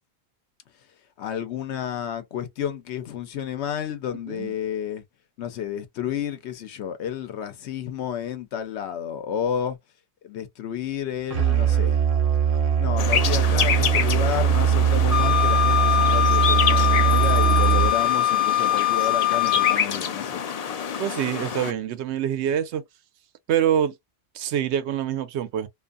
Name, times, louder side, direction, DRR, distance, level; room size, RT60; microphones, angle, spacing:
voice 1, 1.2-5.0 5.4-9.8 10.2-12.0 12.8-20.4, left 9 dB, 85° left, 0.9 m, -31 dB
Musical instrument, 11.3-18.1, right 8 dB, 55° right, 0.8 m, -21 dB
sound 1, 13.0-21.7, left 7 dB, 55° left, 0.4 m, -28 dB
Wind instrument woodwind instrument, 15.1-19.8, left 12 dB, 25° right, 0.4 m, -22 dB
voice 2, 21.0-22.8 23.5-23.9 24.3-25.7, right 10 dB, 90° right, 0.9 m, -25 dB
2.6 x 2.5 x 2.3 m
omnidirectional pair, 1.1 m